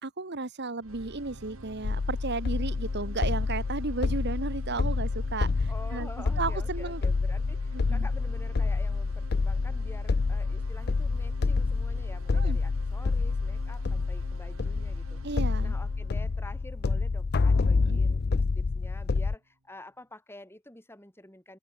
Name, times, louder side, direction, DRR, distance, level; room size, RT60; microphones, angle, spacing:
voice 1, 0.0-7.0 7.7-8.1 12.3-12.6 15.2-15.7 17.9-18.0, right 3 dB, 50° right, 1.4 m, -34 dB
sound 1, 0.8-18.8, right 2 dB, 75° right, 2.0 m, -47 dB
sound 2, 1.8-19.3, left 4 dB, 45° left, 0.5 m, -28 dB
voice 2, 5.7-15.2 15.6-21.6, left 1 dB, 10° left, 5.8 m, -48 dB
open air
head